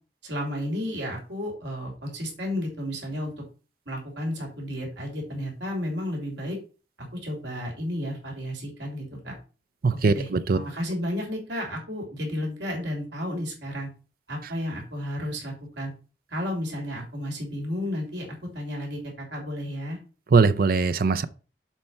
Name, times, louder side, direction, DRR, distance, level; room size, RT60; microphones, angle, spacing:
voice 1, 0.2-3.4 3.8-6.6 7.1-9.3 9.9-13.9 14.3-15.9 16.3-20.0, equal, 75° right, 3.2 m, -32 dB
voice 2, 9.8-10.6 20.3-21.2, right 4 dB, 55° right, 0.5 m, -21 dB
7.3 x 4.6 x 5.5 m
head